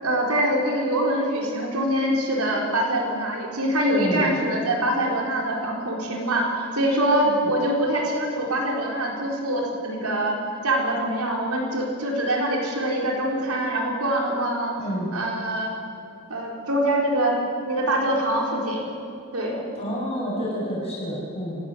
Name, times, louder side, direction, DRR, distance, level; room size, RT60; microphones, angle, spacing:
voice 1, 0.0-10.4 10.6-14.7 15.1-15.7 16.3-17.4 17.7-18.8 19.3-19.6, right 1 dB, 85° right, -1 dB, 4.6 m, -24 dB
voice 2, 3.9-4.2 14.8-15.1 19.8-21.6, equal, 25° left, -5 dB, 8.0 m, -28 dB
28.5 x 16.5 x 7.1 m, 2.6 s
head